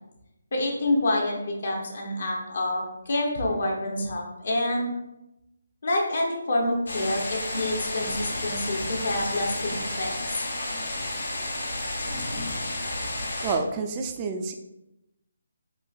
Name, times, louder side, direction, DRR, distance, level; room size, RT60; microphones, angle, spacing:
voice 1, 0.5-4.9 5.8-10.4, left 1 dB, 60° left, -1 dB, 0.8 m, -27 dB
sound 1, 6.9-13.5, left 1 dB, 75° left, 1.2 m, -31 dB
voice 2, 13.4-14.5, right 4 dB, 25° right, 4 dB, 0.4 m, -28 dB
4.4 x 3.0 x 2.3 m, 0.91 s
figure-of-eight pair, 150°, 0 cm